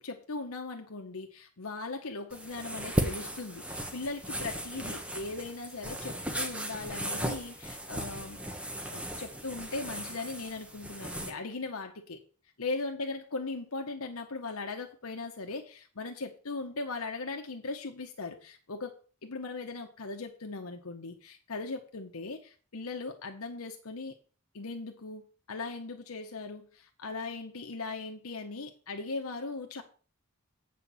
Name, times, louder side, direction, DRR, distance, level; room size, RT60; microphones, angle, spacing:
voice 1, 0.0-8.4 8.9-12.2 12.6-18.9 19.2-24.1 24.5-29.8, left 3 dB, 75° left, 1.0 m, -39 dB
sound 1, 2.3-11.3, right 1 dB, 5° right, 1.0 m, -36 dB
8.5 x 4.5 x 7.0 m
head